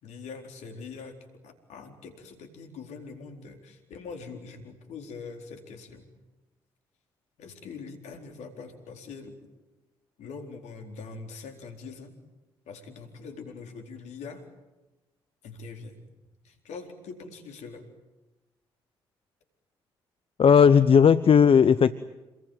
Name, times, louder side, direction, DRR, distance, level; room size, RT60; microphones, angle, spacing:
voice 1, 0.0-6.1 7.4-9.5 10.2-12.1 12.7-14.4 15.4-16.0 16.4-17.9, left 4 dB, 70° left, 5 dB, 4.2 m, -43 dB
voice 2, 20.4-21.9, left 7 dB, 50° left, 15 dB, 0.9 m, -16 dB
28.0 x 21.5 x 9.2 m, 1.1 s
hypercardioid pair, 45°, 12 cm